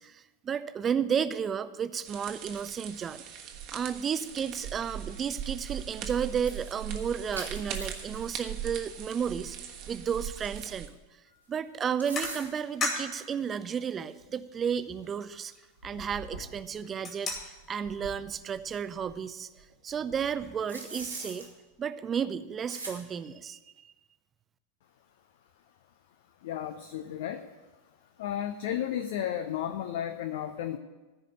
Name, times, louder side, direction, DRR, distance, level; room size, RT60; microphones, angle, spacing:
voice 1, 0.0-3.2 3.7-11.0 11.5-15.5 15.8-21.5 21.8-23.9, right 7 dB, 25° right, 13 dB, 0.5 m, -33 dB
sound 1, 2.0-10.9, right 9 dB, 40° right, 1.3 m, -40 dB
sound 2, 5.7-5.9 6.4-8.5 8.9-9.0 9.8-10.9 11.8-12.7 13.6-13.7 14.2-14.3 14.7-14.8 15.0-15.1 15.8-16.8 17.3-19.1 19.6-21.5 22.7-23.0, right 2 dB, 85° right, 2.5 m, -44 dB
sound 3, 11.2-11.5 12.1-13.2 13.6-13.7 14.3-14.4 14.7-16.4 16.8-17.7, left 3 dB, 25° left, 2.3 m, -36 dB
voice 2, 26.4-27.5 28.2-30.8, left 10 dB, 55° left, 8 dB, 0.6 m, -33 dB
14.5 x 5.0 x 8.9 m, 1.2 s
figure-of-eight pair, 90°, 0 cm